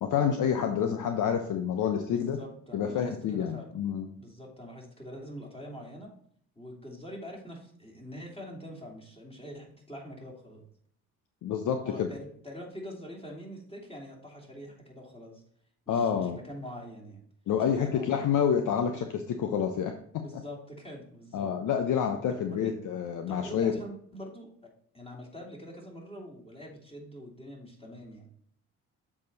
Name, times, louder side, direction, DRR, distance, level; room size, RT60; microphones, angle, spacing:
voice 1, 0.0-2.4 2.7-4.1 11.4-12.1 15.9-16.4 17.5-19.9 21.3-23.7, left 8 dB, 55° left, 6 dB, 0.9 m, -28 dB
voice 2, 2.1-3.7 4.2-6.1 6.6-10.6 11.8-15.4 15.9-17.2 17.6-18.2 20.2-21.5 22.3-22.7 23.3-24.5 24.9-28.3, equal, 15° left, -1 dB, 2.9 m, -44 dB
7.2 x 4.8 x 4.1 m, 0.64 s
hypercardioid pair, 50°, 39 cm